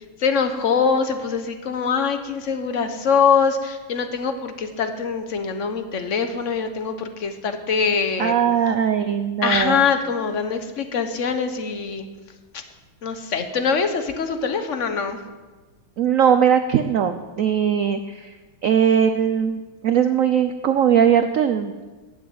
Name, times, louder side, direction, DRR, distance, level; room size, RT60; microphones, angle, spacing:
voice 1, 0.2-8.3 9.4-12.0 12.5-12.6 13.0-15.2, left 6 dB, 45° left, 8 dB, 1.2 m, -23 dB
voice 2, 8.2-9.8 16.0-18.3 18.6-21.8, right 8 dB, 85° right, 9 dB, 0.7 m, -20 dB
14.5 x 7.1 x 9.4 m, 1.3 s
omnidirectional pair, 2.2 m